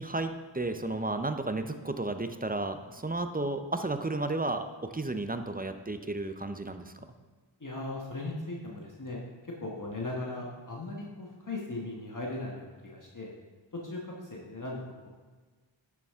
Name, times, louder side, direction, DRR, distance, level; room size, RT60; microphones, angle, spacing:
voice 1, 0.0-7.1, right 2 dB, 20° right, 8 dB, 0.6 m, -33 dB
voice 2, 7.6-13.3 13.7-15.1, left 2 dB, 40° left, -2 dB, 1.4 m, -38 dB
12.0 x 7.0 x 3.6 m, 1.4 s
wide cardioid pair, 75°, 47 cm